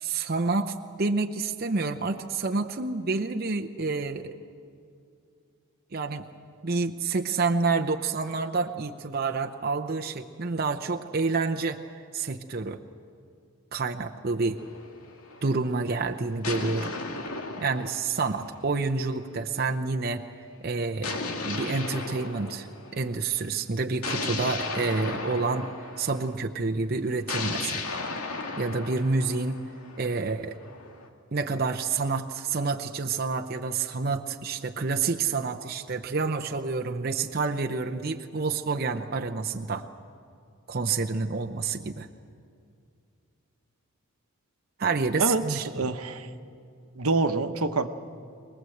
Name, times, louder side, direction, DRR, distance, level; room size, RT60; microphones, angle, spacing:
voice 1, 0.0-4.3 5.9-6.2 6.6-11.8 12.1-12.8 13.7-14.6 15.4-16.9 17.6-20.2 20.6-22.7 22.9-25.7 26.0-28.0 28.6-29.6 30.0-30.6 31.3-39.9 40.7-42.1 44.8-45.6, right 4 dB, 45° right, 4 dB, 0.7 m, -28 dB
sound 1, 14.6-15.6 16.4-19.0 21.0-23.2 24.0-26.3 27.3-31.1, left 3 dB, 90° left, 2.1 m, -35 dB
voice 2, 45.2-46.3 47.0-47.9, right 3 dB, 85° right, 8 dB, 1.1 m, -26 dB
23.5 x 20.0 x 7.9 m, 2.4 s
head